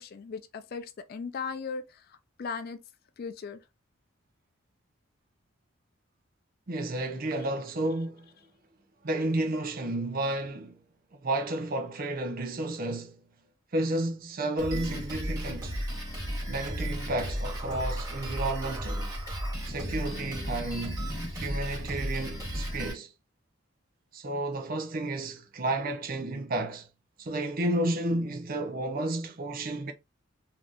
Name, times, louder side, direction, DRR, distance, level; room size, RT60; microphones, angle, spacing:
voice 1, 0.0-2.8 3.2-3.6, left 5 dB, 50° left, 0.4 m, -38 dB
voice 2, 6.7-8.3 9.0-10.8 11.2-13.2 13.7-15.8 16.5-19.1 19.6-21.1 21.3-23.1 24.1-26.9 27.2-29.9, right 1 dB, 45° right, 0.6 m, -31 dB
Drum kit, 14.6-22.9, equal, 20° right, 1.4 m, -34 dB
3.4 x 2.8 x 2.5 m
head